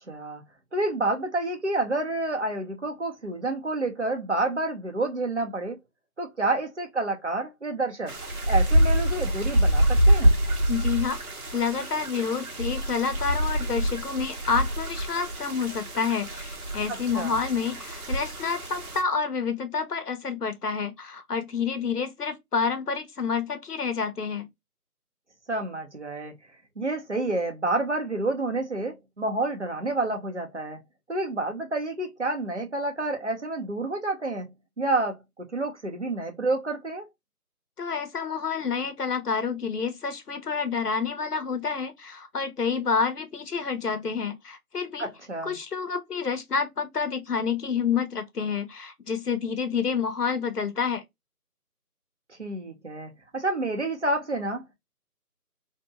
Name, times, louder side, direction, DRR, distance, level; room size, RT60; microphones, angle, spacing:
voice 1, 0.1-0.4 0.7-5.8 6.2-8.1 8.5-10.4 16.9-17.4 25.5-26.3 26.8-30.8 31.1-34.5 34.8-37.1 45.0-45.6 52.3-54.7, right 2 dB, 50° right, 0.8 m, -29 dB
sound 1, 8.1-19.0, equal, 65° right, 1.0 m, -25 dB
voice 2, 10.7-11.2 11.5-24.5 37.8-45.1 45.4-51.0, left 5 dB, 80° left, 0.9 m, -28 dB
2.7 x 2.6 x 2.2 m
figure-of-eight pair, 180°, 46 cm